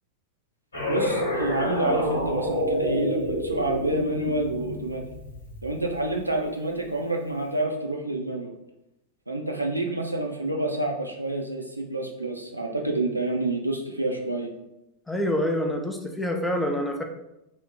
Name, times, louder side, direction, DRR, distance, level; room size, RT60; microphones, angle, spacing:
sound 1, 0.7-6.0, equal, 75° left, 0.9 m, -29 dB
voice 1, 0.9-5.0 5.6-8.5 9.3-14.5, right 2 dB, 85° right, 1 dB, 0.4 m, -28 dB
voice 2, 15.1-17.0, equal, 5° left, 2 dB, 0.4 m, -26 dB
2.5 x 2.1 x 3.6 m, 0.89 s
figure-of-eight pair, 90°, 0 cm